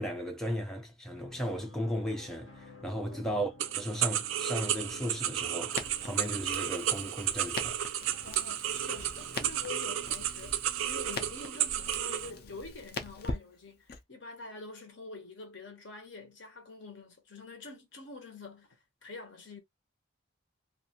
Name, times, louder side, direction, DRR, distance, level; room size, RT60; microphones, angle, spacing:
voice 1, 0.0-3.5 3.7-7.8, equal, ahead, 0.5 m, -35 dB
sound 1, 1.1-13.2, left 1 dB, 80° left, 1.2 m, -55 dB
voice 2, 2.9-3.4 8.2-10.5 10.9-19.6, left 3 dB, 65° left, 0.9 m, -46 dB
sound 2, 3.6-12.3, right 10 dB, 90° right, 0.4 m, -33 dB
Crackle, 5.7-14.0, left 3 dB, 50° left, 0.5 m, -42 dB
2.5 x 2.4 x 2.8 m
head